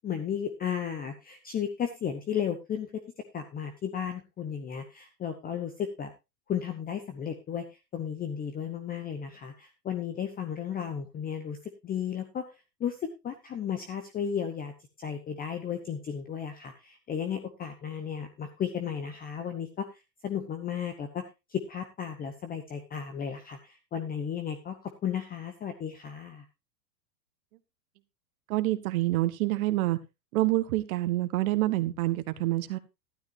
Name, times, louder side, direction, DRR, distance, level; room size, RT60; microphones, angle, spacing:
voice 1, 0.0-2.9 3.3-6.1 6.5-12.4 12.8-13.0 13.2-14.7 15.0-21.2 21.5-26.4, left 8 dB, 20° left, 9 dB, 0.9 m, -34 dB
voice 2, 28.5-30.0 30.3-32.8, right 16 dB, 55° right, 12 dB, 1.4 m, -27 dB
12.5 x 12.0 x 2.7 m, 0.24 s
hypercardioid pair, 120°, 50 cm